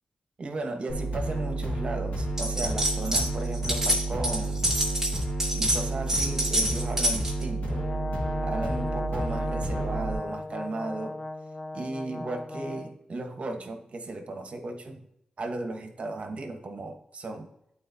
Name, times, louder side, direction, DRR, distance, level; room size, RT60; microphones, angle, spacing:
voice 1, 0.4-4.7 5.5-7.9 8.4-11.2 11.7-15.1 15.4-17.5, right 2 dB, 55° right, 5 dB, 1.2 m, -35 dB
sound 1, 0.9-10.1, right 2 dB, 85° left, 2.2 m, -31 dB
sound 2, 2.4-3.3 3.5-7.4, equal, 15° right, 2.1 m, -27 dB
Brass instrument, 7.7-12.9, left 2 dB, 45° left, 0.8 m, -36 dB
11.5 x 4.2 x 2.8 m, 0.79 s
wide cardioid pair, 115°, 2 cm